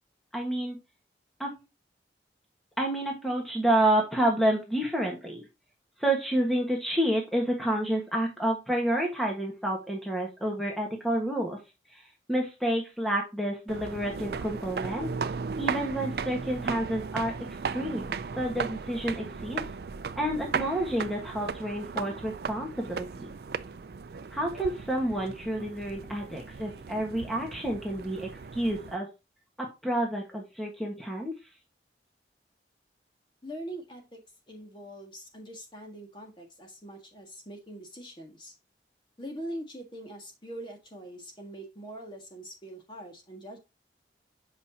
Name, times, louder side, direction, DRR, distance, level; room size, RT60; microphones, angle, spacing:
voice 1, 0.3-0.8 1.4-1.6 2.8-5.5 6.0-11.6 11.9-12.0 12.3-15.1 15.6-17.3 17.7-19.6 20.2-23.3 24.3-29.1 29.6-31.3, right 1 dB, ahead, 0 dB, 1.4 m, -29 dB
sound 1, 13.7-29.0, right 5 dB, 60° right, 0.4 m, -36 dB
voice 2, 33.4-38.5 39.2-43.6, right 1 dB, 25° left, 2 dB, 1.7 m, -43 dB
8.0 x 5.1 x 2.8 m, 0.26 s
head